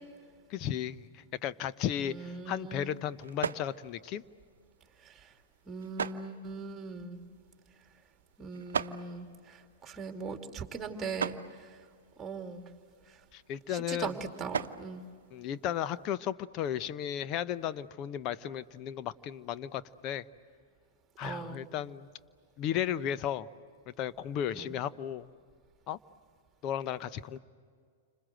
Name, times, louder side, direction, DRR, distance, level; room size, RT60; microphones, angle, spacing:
voice 1, 0.5-4.2 13.3-14.2 15.3-20.3 21.2-22.1 22.6-23.5 23.9-25.3 25.9-26.0 26.6-27.4, left 10 dB, 40° left, 14 dB, 0.8 m, -35 dB
sound 1, 1.8-16.1, right 7 dB, 75° right, 0.8 m, -42 dB
voice 2, 2.1-3.0 5.0-5.3 5.7-7.2 8.4-11.4 11.7-11.8 12.2-12.7 13.7-15.0 21.2-21.7 24.5-24.7, right 4 dB, 15° right, 4 dB, 2.8 m, -40 dB
29.5 x 26.5 x 7.7 m, 2.1 s
figure-of-eight pair, 105°, 0 cm